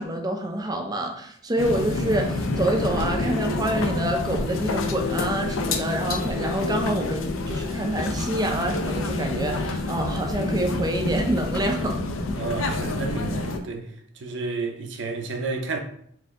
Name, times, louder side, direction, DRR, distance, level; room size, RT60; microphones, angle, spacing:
voice 1, 0.0-12.0, right 1 dB, 20° right, 0.4 m, -27 dB
sound 1, 1.6-13.6, left 2 dB, 90° left, 0.5 m, -27 dB
voice 2, 12.4-13.9 14.2-15.8, right 3 dB, 65° right, 0.6 m, -31 dB
4.4 x 2.6 x 3.6 m
head